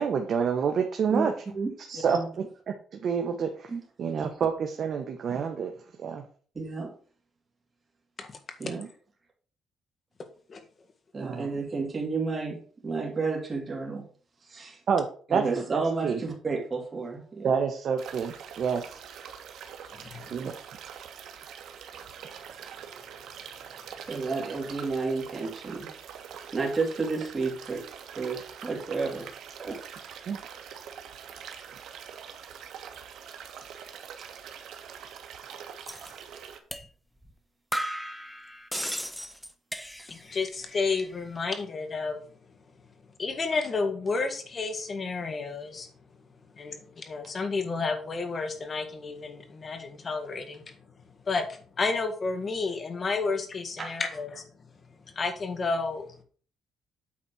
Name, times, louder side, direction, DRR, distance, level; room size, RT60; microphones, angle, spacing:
voice 1, 0.0-1.3 1.9-2.4 2.9-3.7 4.0-5.7 6.0-6.2 8.7-8.9 11.2-11.5 14.9-16.2 17.4-19.0 20.3-20.5 30.3-30.4, right 6 dB, 50° right, 4 dB, 1.1 m, -28 dB
voice 2, 6.5-6.9 8.6-8.8 11.1-14.0 14.5-14.8 15.3-17.5 24.1-25.9 26.5-27.8 28.2-29.3 29.6-30.3 53.8-53.9, right 4 dB, 25° right, 0 dB, 2.7 m, -31 dB
sound 1, 18.0-36.6, right 8 dB, 75° right, 1.3 m, -44 dB
sound 2, 35.9-36.1 36.7-36.9 37.2-37.3 37.7-40.3 40.6-41.2, equal, ahead, 0.8 m, -35 dB
voice 3, 40.1-42.2 43.2-45.9 46.6-50.8 51.3-54.5 55.1-56.1, left 4 dB, 35° left, 7 dB, 1.7 m, -31 dB
8.7 x 4.2 x 6.2 m, 0.43 s
cardioid pair, 135°, 0 cm